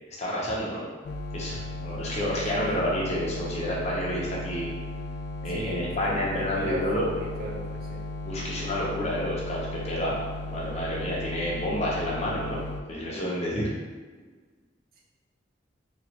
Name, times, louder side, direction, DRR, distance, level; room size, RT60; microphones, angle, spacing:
voice 1, 0.2-0.8 1.3-4.7 5.4-7.0 8.3-13.7, equal, 35° left, -5 dB, 0.8 m, -29 dB
sound 1, 1.0-12.8, left 2 dB, 60° left, 0.3 m, -36 dB
voice 2, 2.5-3.1 5.5-8.0, right 1 dB, 55° right, -2 dB, 0.6 m, -36 dB
3.0 x 2.4 x 2.9 m, 1.4 s
head